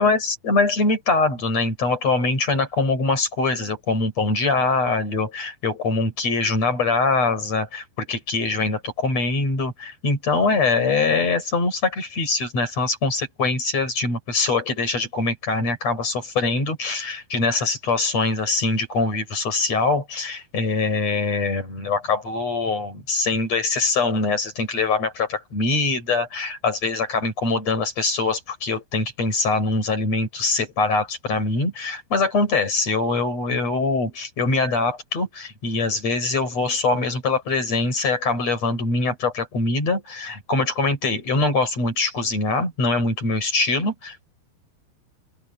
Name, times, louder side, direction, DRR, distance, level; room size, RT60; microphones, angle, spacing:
voice 1, 0.0-44.3, left 3 dB, 40° left, 8.3 m, -23 dB
open air
omnidirectional pair, 4.6 m